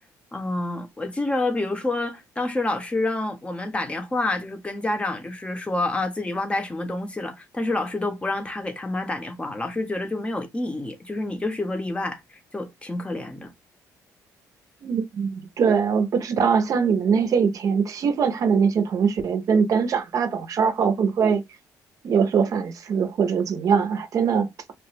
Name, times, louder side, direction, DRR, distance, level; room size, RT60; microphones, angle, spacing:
voice 1, 0.3-12.2 12.5-13.5, left 2 dB, 15° left, 0.7 m, -28 dB
voice 2, 14.8-21.4 22.0-24.5, right 6 dB, 55° right, 0.6 m, -22 dB
2.9 x 2.1 x 3.1 m
cardioid pair, 95°, 7 cm